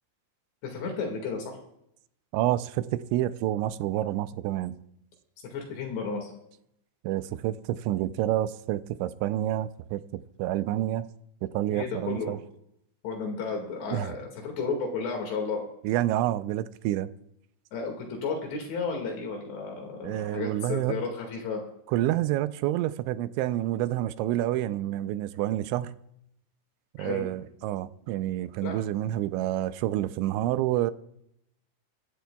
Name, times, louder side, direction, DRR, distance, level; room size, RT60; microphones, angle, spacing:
voice 1, 0.6-1.6 5.4-6.3 11.7-12.4 13.0-15.6 17.7-21.6 27.0-27.3 28.6-28.8, left 4 dB, 70° left, 4.1 m, -33 dB
voice 2, 2.3-4.8 7.0-10.0 10.4-11.0 11.4-12.4 13.9-14.1 15.8-17.1 20.0-21.0 21.9-25.9 27.0-30.9, right 13 dB, 90° right, 3.0 m, -28 dB
24.5 x 13.0 x 2.3 m
omnidirectional pair, 5.2 m